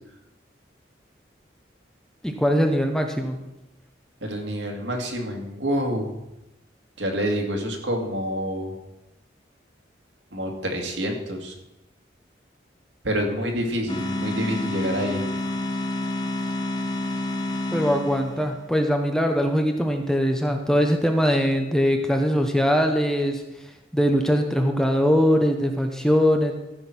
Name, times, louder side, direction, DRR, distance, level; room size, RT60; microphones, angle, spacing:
voice 1, 2.2-3.4 17.7-23.4 23.9-26.5, equal, 5° left, 4 dB, 0.9 m, -21 dB
voice 2, 4.2-6.1 7.0-8.7 10.3-11.5 13.0-15.2, equal, 80° right, 2 dB, 2.2 m, -27 dB
sound 1, 13.9-18.6, left 1 dB, 20° left, 1.2 m, -28 dB
14.0 x 6.2 x 6.1 m, 0.96 s
head